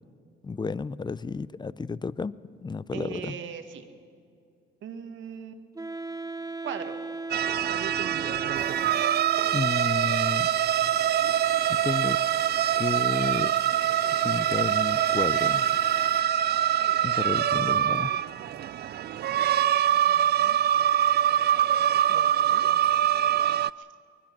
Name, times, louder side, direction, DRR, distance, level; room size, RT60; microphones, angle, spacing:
voice 1, 0.4-3.4 9.5-10.5 11.7-12.2 12.7-13.5 14.2-15.8 17.0-18.1, left 4 dB, 20° left, 18 dB, 0.6 m, -32 dB
voice 2, 2.9-3.8 4.8-5.6 6.6-7.0 20.0-20.6 22.1-22.7 23.8-23.9, right 8 dB, 75° right, 7 dB, 1.8 m, -39 dB
Wind instrument woodwind instrument, 5.8-9.9, right 2 dB, 15° right, 0.8 m, -37 dB
sound 1, 7.3-23.7, right 10 dB, 55° right, 0.4 m, -24 dB
sound 2, 8.5-16.2, left 3 dB, 35° left, 2.6 m, -46 dB
24.0 x 20.5 x 6.1 m, 2.4 s
cardioid pair, 90°, 20 cm